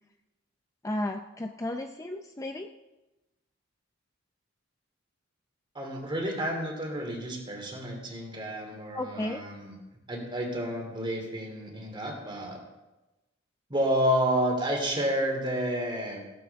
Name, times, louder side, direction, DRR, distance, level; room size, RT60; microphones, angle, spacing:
voice 1, 0.8-2.7 8.9-9.4, left 1 dB, 15° left, 5 dB, 0.5 m, -33 dB
voice 2, 5.7-9.8 10.1-12.6 13.7-16.2, equal, 25° right, 1 dB, 2.9 m, -30 dB
16.0 x 12.5 x 3.6 m, 1.0 s
head